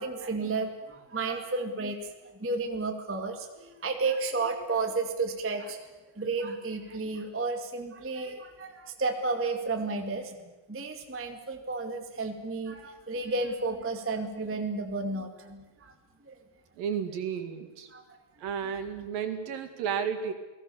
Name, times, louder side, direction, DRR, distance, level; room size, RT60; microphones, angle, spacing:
voice 1, 0.0-5.9 6.1-15.9 16.2-16.4 17.9-18.2 19.0-19.1, right 3 dB, 5° right, 5 dB, 0.9 m, -32 dB
voice 2, 16.8-17.9 18.4-20.3, right 7 dB, 75° right, 6 dB, 3.6 m, -32 dB
29.5 x 19.0 x 7.1 m, 1.2 s
omnidirectional pair, 4.1 m